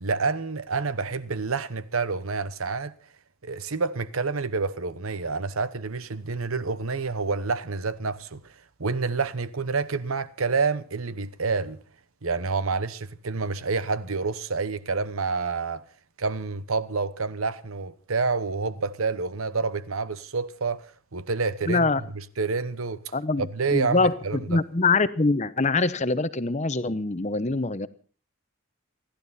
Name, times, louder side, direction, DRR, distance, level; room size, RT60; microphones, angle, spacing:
voice 1, 0.0-2.9 3.4-8.4 8.8-11.8 12.2-15.8 16.2-20.9 21.1-24.6, right 4 dB, 80° right, 1.0 m, -28 dB
voice 2, 21.7-22.0 23.1-27.9, left 3 dB, 35° left, 0.8 m, -24 dB
28.5 x 11.5 x 4.2 m
head